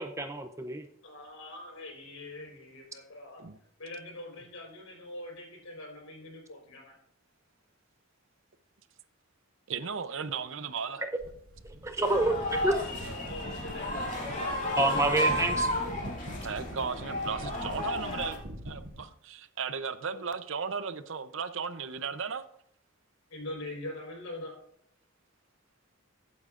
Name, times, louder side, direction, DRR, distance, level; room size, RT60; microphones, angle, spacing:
voice 1, 0.0-0.8 11.8-12.8 14.8-15.7, right 2 dB, 15° right, 0.6 m, -28 dB
voice 2, 1.0-3.4 3.8-6.9 12.5-16.2 23.3-24.6, left 2 dB, 80° left, 4.5 m, -43 dB
voice 3, 9.7-11.0 16.4-22.4, right 6 dB, 65° right, 0.6 m, -36 dB
sound 1, 11.2-19.0, equal, 85° right, 2.4 m, -43 dB
sound 2, 12.0-18.4, left 1 dB, 40° left, 2.6 m, -33 dB
15.0 x 8.5 x 2.5 m
head